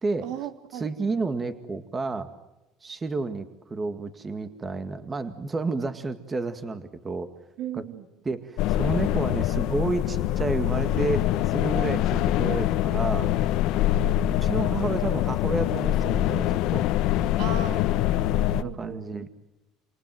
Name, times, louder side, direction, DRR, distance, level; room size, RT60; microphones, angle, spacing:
voice 1, 0.2-0.9 7.6-8.0 13.8-14.1 17.4-19.3, right 8 dB, 70° right, 8 dB, 3.1 m, -37 dB
voice 2, 0.7-2.3 2.8-7.3 7.7-7.9 8.2-13.3 14.3-16.9 18.5-19.4, right 3 dB, 20° right, 9 dB, 2.0 m, -30 dB
sound 1, 8.6-18.6, left 13 dB, 70° left, 1.3 m, -24 dB
28.0 x 28.0 x 7.7 m, 0.98 s
cardioid pair, 115°, 0 cm